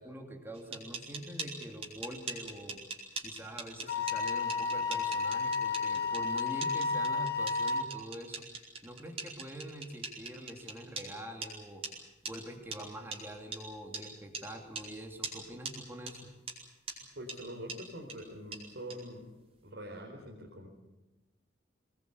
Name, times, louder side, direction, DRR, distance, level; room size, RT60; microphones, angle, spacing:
voice 1, 0.0-2.8 3.2-8.4 8.8-11.8 12.2-16.3, right 1 dB, 10° right, 2 dB, 2.8 m, -45 dB
sound 1, 0.5-11.1 11.4-11.5 11.8-11.9 12.2-12.3 12.7-12.8 13.1-13.2 13.5-13.6 13.9-14.0 14.3-14.4 14.7-14.9 15.2-15.4 15.6-15.7 16.1-16.2 16.5-16.6 16.9-17.0 17.3-17.4 17.7-17.8 18.1-18.2 18.5-18.6 18.9-19.0, right 4 dB, 30° right, 4.9 m, -40 dB
Wind instrument woodwind instrument, 3.9-7.9, left 4 dB, 55° left, 2.3 m, -32 dB
voice 2, 17.1-19.2 19.6-20.7, equal, 70° right, -1 dB, 4.4 m, -44 dB
24.0 x 20.0 x 8.2 m, 1.1 s
head